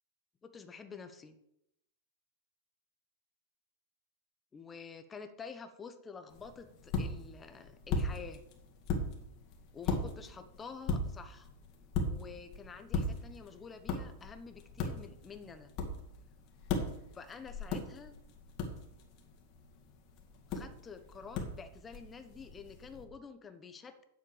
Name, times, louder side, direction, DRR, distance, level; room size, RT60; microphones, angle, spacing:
voice 1, 0.4-1.3 4.5-8.4 9.7-11.5 12.1-15.7 17.1-18.1 20.5-24.0, left 5 dB, 15° left, 8 dB, 1.0 m, -49 dB
sound 1, 6.3-23.0, left 3 dB, 35° left, 2.1 m, -39 dB
10.0 x 7.5 x 7.2 m, 0.81 s
supercardioid pair, 160°, 0 cm